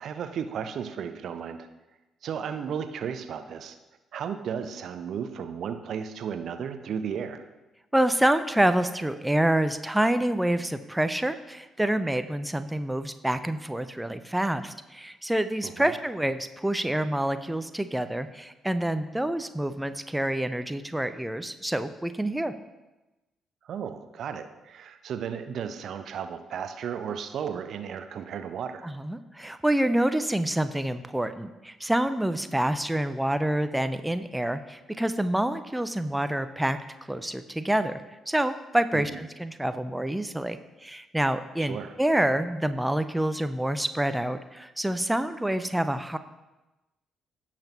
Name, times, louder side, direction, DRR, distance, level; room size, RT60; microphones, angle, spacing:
voice 1, 0.0-1.7 2.2-3.8 4.1-7.4 15.6-15.9 23.6-28.9 38.9-39.2 41.6-41.9, right 7 dB, 55° right, 9 dB, 0.6 m, -34 dB
voice 2, 7.9-22.5 28.8-36.8 37.1-38.0 38.3-46.2, right 1 dB, 10° right, 10 dB, 0.5 m, -27 dB
16.5 x 5.8 x 3.0 m, 1.1 s
figure-of-eight pair, 40°, 0 cm